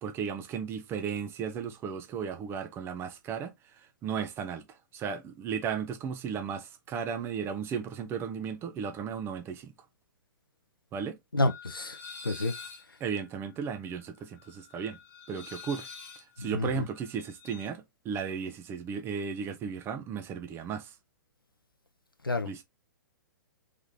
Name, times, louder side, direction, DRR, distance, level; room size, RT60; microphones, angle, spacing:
voice 1, 0.0-9.7 10.9-11.2 13.0-15.0 15.3-15.9 16.4-20.9 22.4-22.6, right 6 dB, 20° right, 0.9 m, -35 dB
voice 2, 11.3-12.5 12.9-13.0 16.4-16.9 22.2-22.5, left 2 dB, 85° left, 0.7 m, -30 dB
sound 1, 11.4-17.7, left 5 dB, 20° left, 1.0 m, -47 dB
3.6 x 3.6 x 2.8 m
figure-of-eight pair, 115°, 11 cm